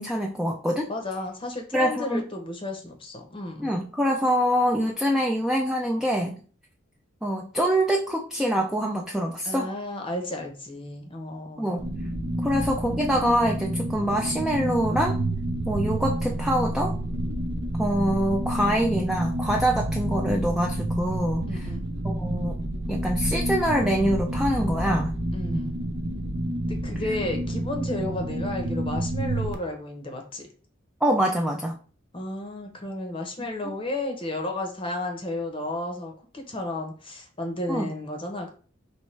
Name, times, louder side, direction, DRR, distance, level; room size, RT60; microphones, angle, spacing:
voice 1, 0.0-0.9 1.7-2.2 3.6-6.4 7.2-9.7 11.6-11.9 12.4-15.2 15.7-17.0 17.8-21.7 22.0-22.6 22.9-25.1 31.0-31.8 37.7-37.9, equal, 5° right, 0 dB, 0.3 m, -25 dB
voice 2, 0.9-3.8 9.4-11.7 21.5-21.8 25.3-25.7 26.7-30.5 32.1-38.5, left 1 dB, 25° left, 3 dB, 0.7 m, -33 dB
sound 1, 11.8-29.5, right 1 dB, 60° right, 0.6 m, -29 dB
4.5 x 3.1 x 3.2 m, 0.40 s
head